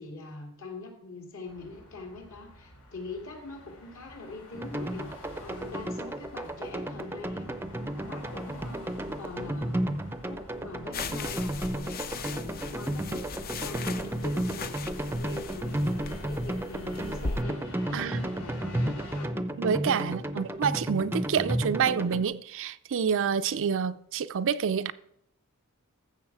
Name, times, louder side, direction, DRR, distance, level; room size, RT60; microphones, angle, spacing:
voice 1, 0.0-7.5 8.0-8.9 9.2-9.9 10.3-14.8 15.2-15.9 16.2-19.3 20.0-20.5, left 3 dB, 65° left, 2.7 m, -43 dB
sound 1, 1.5-19.3, left 1 dB, 85° left, 4.1 m, -49 dB
sound 2, 4.5-22.2, right 1 dB, 10° right, 0.6 m, -33 dB
sound 3, 10.9-17.4, left 4 dB, 45° left, 0.6 m, -38 dB
voice 2, 17.9-18.2 19.6-24.9, right 7 dB, 60° right, 0.5 m, -28 dB
14.5 x 6.6 x 4.7 m
head